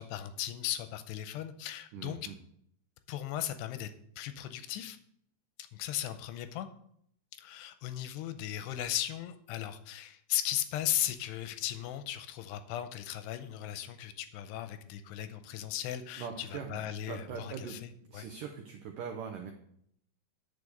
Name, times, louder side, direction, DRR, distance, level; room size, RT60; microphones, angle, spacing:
voice 1, 0.0-2.2 3.1-3.9 4.2-5.0 5.7-6.7 7.4-18.2, left 12 dB, 85° left, 10 dB, 2.7 m, -37 dB
voice 2, 1.9-2.4 16.2-17.8 18.1-19.5, right 6 dB, 85° right, 4 dB, 1.9 m, -41 dB
8.5 x 6.8 x 6.5 m, 0.69 s
omnidirectional pair, 5.0 m